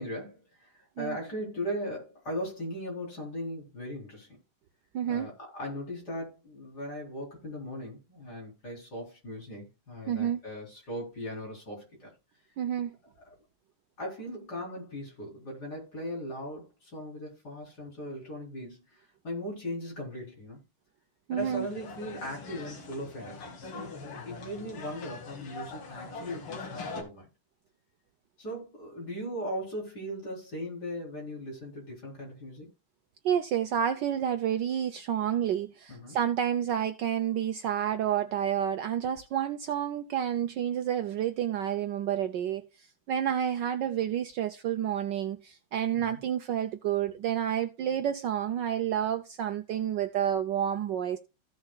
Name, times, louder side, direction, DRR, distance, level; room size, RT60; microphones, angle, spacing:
voice 1, 0.0-4.4 5.1-12.1 13.2-13.3 14.0-20.6 21.3-27.3 28.4-32.7 35.9-36.2 45.9-46.2, equal, 45° left, 4.5 m, -38 dB
voice 2, 4.9-5.3 10.1-10.4 12.6-12.9 21.3-21.7 33.2-42.6 43.1-51.2, right 9 dB, 70° right, 1.2 m, -29 dB
sound 1, 21.4-27.0, left 4 dB, 90° left, 2.7 m, -42 dB
15.0 x 6.4 x 2.3 m
omnidirectional pair, 2.3 m